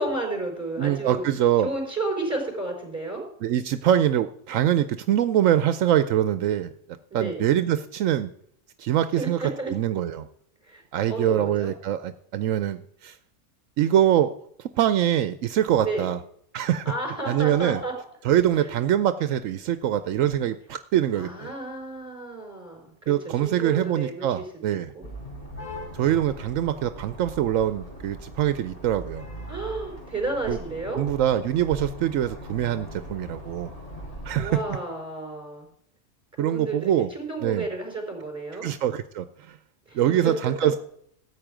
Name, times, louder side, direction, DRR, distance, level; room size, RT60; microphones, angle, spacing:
voice 1, 0.0-1.2 1.6-3.2 7.1-7.5 9.2-9.7 10.6-10.8 11.1-11.7 15.8-16.1 16.8-17.9 21.2-25.1 29.5-31.1 34.4-35.7 36.4-38.7 39.9-40.7, right 2 dB, 10° right, 1 dB, 4.5 m, -32 dB
voice 2, 0.8-1.7 3.4-6.7 7.1-8.3 8.8-10.3 10.9-13.2 13.8-14.3 14.6-16.2 16.5-16.8 17.3-17.8 18.2-21.5 23.1-24.9 25.9-29.2 30.5-30.6 30.9-33.7 34.2-34.6 36.4-37.1 37.4-37.7 38.6-39.6 39.9-40.8, right 11 dB, 80° right, 12 dB, 1.0 m, -24 dB
sound 1, 25.0-34.7, equal, 30° left, 4.2 m, -40 dB
13.5 x 8.5 x 5.0 m, 0.67 s
omnidirectional pair, 1.4 m